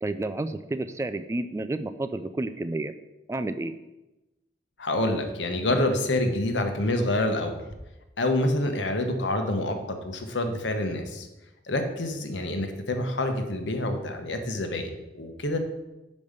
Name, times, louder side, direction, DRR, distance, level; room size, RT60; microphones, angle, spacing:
voice 1, 0.0-2.9 3.3-3.7, right 2 dB, 15° right, 11 dB, 0.3 m, -30 dB
voice 2, 4.8-7.6 8.2-9.8 10.0-11.3 11.7-15.6, left 1 dB, 85° left, 6 dB, 1.1 m, -27 dB
5.4 x 5.2 x 6.5 m, 0.99 s
head